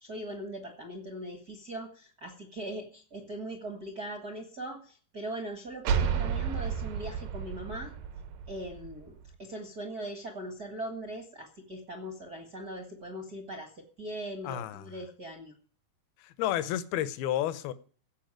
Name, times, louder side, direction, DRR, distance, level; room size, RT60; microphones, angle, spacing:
voice 1, 0.0-7.9 8.5-15.5, right 1 dB, 45° right, 1.2 m, -40 dB
sound 1, 5.8-9.4, right 7 dB, 70° right, 2.4 m, -32 dB
voice 2, 14.4-14.9 16.2-17.7, left 12 dB, 75° left, 2.7 m, -31 dB
16.0 x 5.6 x 9.1 m
omnidirectional pair, 4.6 m